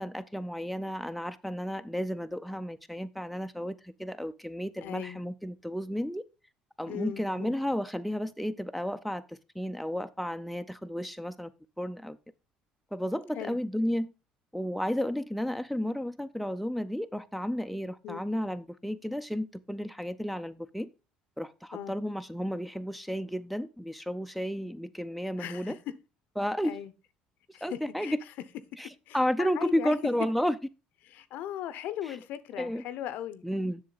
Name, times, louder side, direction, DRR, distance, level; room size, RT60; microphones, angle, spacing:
voice 1, 0.0-6.2 6.8-11.5 11.8-12.2 12.9-14.1 14.5-20.9 21.4-25.8 26.4-26.8 27.6-28.2 28.8-28.9 29.1-30.5 32.6-32.8 33.4-33.8, equal, ahead, 0.6 m, -32 dB
voice 2, 4.8-5.2 6.9-7.5 13.4-13.6 18.0-18.2 21.7-22.0 25.4-25.9 26.6-26.9 27.5-28.2 29.1-29.9 31.0-33.4, left 11 dB, 70° left, 0.7 m, -38 dB
7.4 x 6.4 x 3.9 m
supercardioid pair, 75°, 3 cm